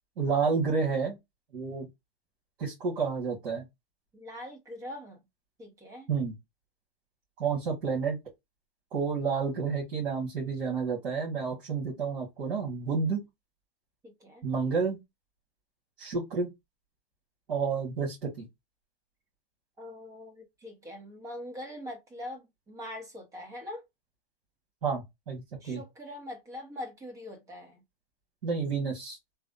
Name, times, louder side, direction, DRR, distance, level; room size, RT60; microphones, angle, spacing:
voice 1, 0.2-1.1 1.5-1.9 2.6-3.7 6.1-6.3 7.4-8.2 8.9-13.2 14.4-15.0 16.0-16.5 17.5-18.5 24.8-25.8 28.4-29.2, right 5 dB, 65° right, 1.6 m, -30 dB
voice 2, 4.1-5.2 5.6-6.1 14.0-14.5 19.8-23.8 25.6-27.8, left 1 dB, 10° right, 0.7 m, -43 dB
3.3 x 2.0 x 2.5 m
hypercardioid pair, 150°, 30 cm